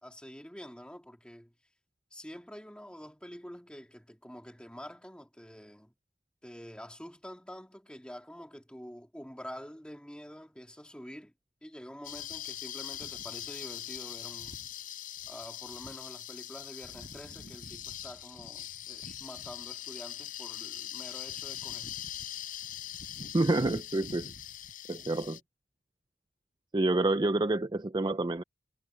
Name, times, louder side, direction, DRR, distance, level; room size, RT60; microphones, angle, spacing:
voice 1, 0.0-1.5 2.1-5.9 6.4-11.3 11.6-14.6 15.3-21.9, equal, 5° left, 2.5 m, -47 dB
sound 1, 12.0-25.4, left 10 dB, 45° left, 4.9 m, -42 dB
voice 2, 23.3-24.3 24.9-25.4 26.7-28.4, right 2 dB, 20° right, 0.4 m, -28 dB
head